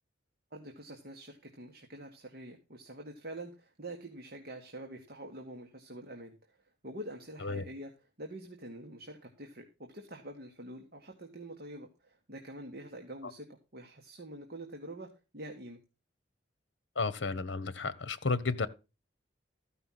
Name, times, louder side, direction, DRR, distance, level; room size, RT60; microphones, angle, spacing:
voice 1, 0.5-6.6 6.8-15.8, right 1 dB, 55° right, 1.6 m, -46 dB
voice 2, 17.0-18.7, left 3 dB, 70° left, 0.9 m, -32 dB
14.0 x 5.7 x 5.9 m
head